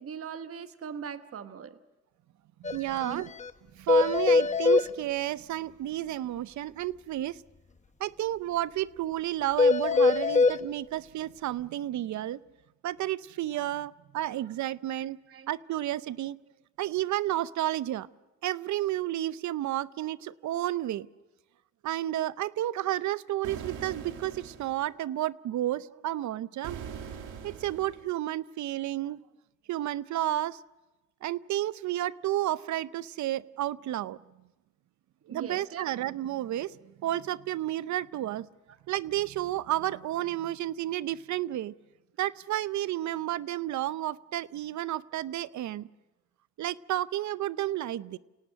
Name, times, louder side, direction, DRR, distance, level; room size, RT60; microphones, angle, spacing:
voice 1, 0.0-1.8 3.0-3.2 15.0-15.5 35.3-35.9, right 7 dB, 50° right, 10 dB, 1.3 m, -40 dB
sound 1, 2.6-2.8 3.0-3.1 3.4-3.5 3.9-4.9 9.6-10.6, left 4 dB, 25° left, 0.9 m, -22 dB
voice 2, 2.6-3.3 3.7-7.4 8.0-12.4 12.8-15.2 15.5-16.4 16.8-18.1 18.4-21.1 21.8-26.8 27.4-29.2 29.7-30.6 31.2-34.2 35.3-36.8 37.0-38.5 38.9-41.7 42.2-45.9 46.6-48.2, right 13 dB, 70° right, 18 dB, 0.7 m, -31 dB
sound 2, 23.4-24.9 26.6-28.1, right 7 dB, 90° right, 2.3 m, -42 dB
28.5 x 18.0 x 6.3 m, 1.1 s
cardioid pair, 90°, 30 cm